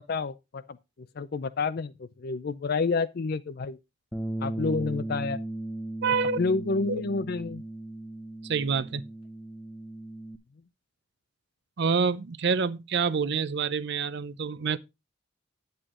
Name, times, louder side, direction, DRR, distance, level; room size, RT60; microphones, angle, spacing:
voice 1, 0.1-0.8 1.2-3.8 4.4-5.4 6.4-7.6, left 4 dB, 45° left, 0.4 m, -29 dB
Bass guitar, 4.1-10.4, right 1 dB, 10° left, 0.7 m, -37 dB
voice 2, 6.0-6.4 6.9-7.0 8.4-9.0 11.8-14.8, right 5 dB, 55° right, 0.5 m, -27 dB
9.6 x 8.0 x 3.7 m
head